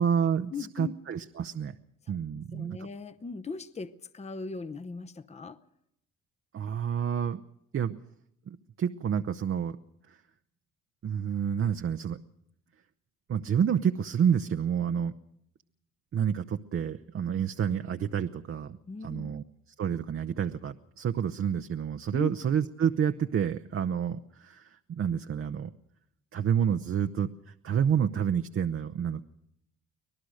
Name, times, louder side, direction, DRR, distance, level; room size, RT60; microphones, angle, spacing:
voice 1, 0.0-1.7 2.1-2.8 6.5-7.4 7.7-8.0 8.5-9.8 10.1-10.2 11.0-12.2 13.3-15.1 16.1-18.8 19.0-19.4 19.8-25.7 26.3-29.2, right 8 dB, 45° right, 7 dB, 0.8 m, -29 dB
voice 2, 0.5-1.0 2.3-5.6 18.9-19.3 22.1-22.3, left 4 dB, 20° left, 12 dB, 0.8 m, -39 dB
25.0 x 18.0 x 6.5 m, 0.76 s
cardioid pair, 90°, 30 cm